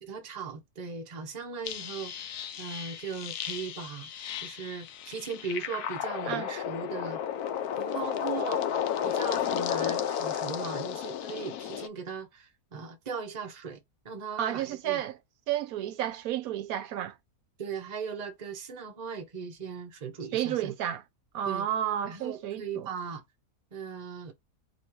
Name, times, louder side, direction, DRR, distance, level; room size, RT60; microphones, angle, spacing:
voice 1, 0.0-4.1 4.4-7.2 7.8-8.6 9.0-13.8 14.0-15.0 17.6-20.7 21.4-21.6 22.0-23.2 23.7-24.3, right 5 dB, 35° right, 0.8 m, -38 dB
sound 1, 1.6-11.9, left 9 dB, 75° left, 1.1 m, -33 dB
voice 2, 14.4-15.2 15.5-17.2 20.3-21.0 21.3-22.9, right 11 dB, 70° right, 1.0 m, -31 dB
3.1 x 2.9 x 4.5 m
omnidirectional pair, 1.7 m